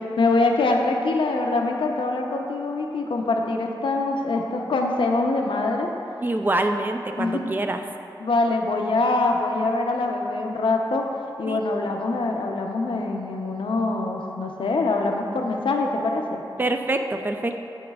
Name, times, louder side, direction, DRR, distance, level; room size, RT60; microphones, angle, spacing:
voice 1, 0.2-5.9 7.2-7.5 8.2-11.1 11.4-16.4, left 3 dB, 80° left, 2 dB, 0.6 m, -24 dB
voice 2, 6.2-7.8 11.5-11.6 16.6-17.6, right 2 dB, 25° right, 5 dB, 0.4 m, -25 dB
7.6 x 7.2 x 2.3 m, 2.8 s
wide cardioid pair, 90°, 9 cm